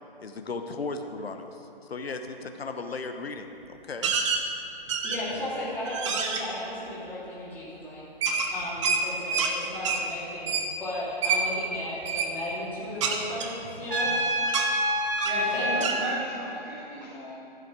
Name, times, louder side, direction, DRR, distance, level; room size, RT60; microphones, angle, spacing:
voice 1, 0.2-4.1, left 3 dB, 80° left, 6 dB, 1.0 m, -36 dB
sound 1, 4.0-4.4 4.9-5.4 5.9-6.4 8.2-9.5 9.8-10.0 10.5-10.7 11.2-11.4 12.0-12.3 13.0-14.1 14.5-14.7 15.2-15.4 15.8-16.0, right 5 dB, 30° right, 0.9 m, -27 dB
voice 2, 5.0-8.1 8.5-14.1 15.3-15.8, left 1 dB, 5° left, -10 dB, 2.8 m, -35 dB
Trumpet, 13.9-15.9, equal, 60° right, 2.8 m, -27 dB
voice 3, 15.2-17.4, equal, 10° right, -5 dB, 0.4 m, -35 dB
13.5 x 7.8 x 4.8 m, 2.9 s
figure-of-eight pair, 145°, 30 cm